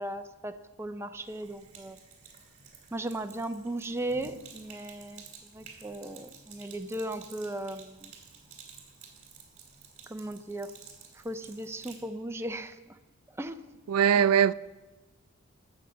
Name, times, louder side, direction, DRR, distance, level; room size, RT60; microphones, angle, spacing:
voice 1, 0.0-2.0 2.9-5.2 5.5-8.1 10.1-10.7 11.2-12.8 13.4-13.6 14.2-14.3, right 1 dB, 10° right, 0.4 m, -37 dB
Sink (filling or washing), 1.1-12.1, right 6 dB, 35° right, 2.5 m, -52 dB
voice 2, 13.9-14.5, right 8 dB, 85° right, 0.3 m, -21 dB
12.5 x 6.4 x 8.0 m
head